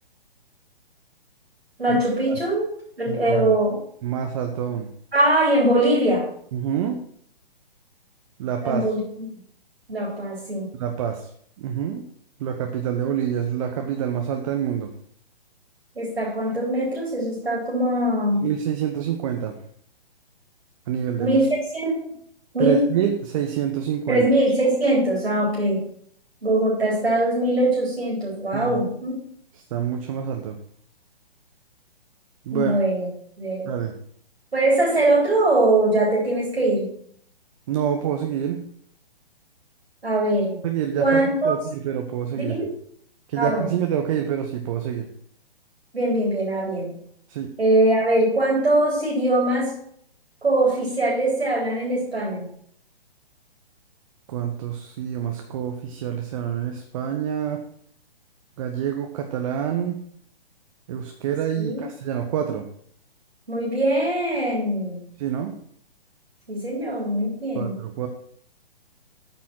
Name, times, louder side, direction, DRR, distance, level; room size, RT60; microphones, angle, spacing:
voice 1, 1.8-2.7 3.0-3.8 5.1-6.3 8.6-9.0 9.9-10.7 16.0-18.5 21.2-22.1 22.5-22.8 24.1-25.8 26.4-29.1 32.5-33.1 33.4-33.7 34.5-36.9 40.0-40.6 41.0-41.5 42.4-42.7 43.4-43.7 45.9-47.0 47.6-49.7 50.4-52.5 61.6-61.8 63.5-65.0 66.5-67.7, right 1 dB, 85° right, -4 dB, 4.0 m, -22 dB
voice 2, 3.1-3.5 4.0-4.9 6.5-7.0 8.4-8.8 10.7-11.3 11.6-12.1 12.4-14.9 18.4-19.6 20.9-21.4 22.6-24.2 28.5-28.8 29.7-30.6 32.5-32.8 33.7-33.9 37.7-38.6 40.6-42.6 43.3-45.1 47.3-47.5 54.3-57.6 58.6-60.0 60.9-62.7 65.2-65.6 67.5-68.1, right 9 dB, 35° right, 4 dB, 0.9 m, -27 dB
8.7 x 5.8 x 6.2 m, 0.64 s
figure-of-eight pair, 130°, 30 cm